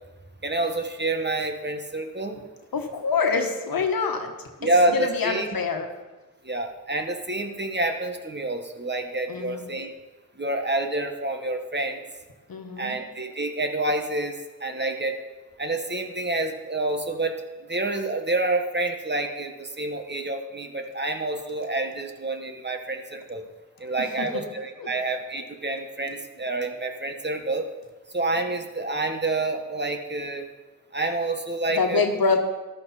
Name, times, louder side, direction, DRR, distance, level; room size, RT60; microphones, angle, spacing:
voice 1, 0.4-2.5 4.6-5.5 6.4-9.9 10.4-12.0 12.8-15.2 15.6-17.3 17.7-23.4 23.8-27.7 28.1-30.5 30.9-32.0, right 2 dB, 30° right, 5 dB, 1.5 m, -28 dB
voice 2, 2.7-4.3 4.6-5.9 9.3-9.7 12.5-13.0 24.0-24.4 24.8-24.9 31.7-32.4, left 4 dB, 90° left, 4 dB, 1.4 m, -26 dB
14.0 x 11.5 x 4.2 m, 1.2 s
cardioid pair, 60°, 34 cm